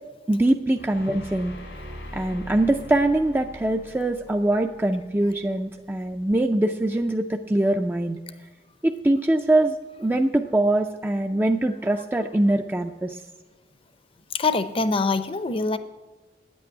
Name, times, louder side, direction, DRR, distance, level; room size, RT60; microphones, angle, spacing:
voice 1, 0.3-1.5 2.1-8.2 8.8-13.2, right 1 dB, 10° right, 4 dB, 0.4 m, -23 dB
sound 1, 0.7-5.8, left 1 dB, 90° left, 2.6 m, -42 dB
voice 2, 14.3-15.8, left 3 dB, 30° left, 13 dB, 0.7 m, -24 dB
9.6 x 8.5 x 9.6 m, 1.2 s
head